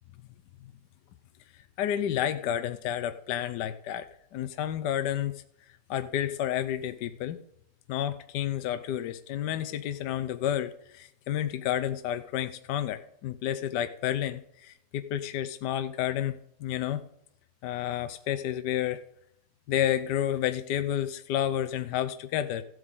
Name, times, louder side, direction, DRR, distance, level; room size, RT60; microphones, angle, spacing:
voice 1, 1.8-5.3 5.9-7.4 7.9-17.0 17.6-19.0 19.7-22.6, left 11 dB, 75° left, 10 dB, 1.2 m, -30 dB
15.0 x 8.1 x 3.7 m, 0.76 s
omnidirectional pair, 1.9 m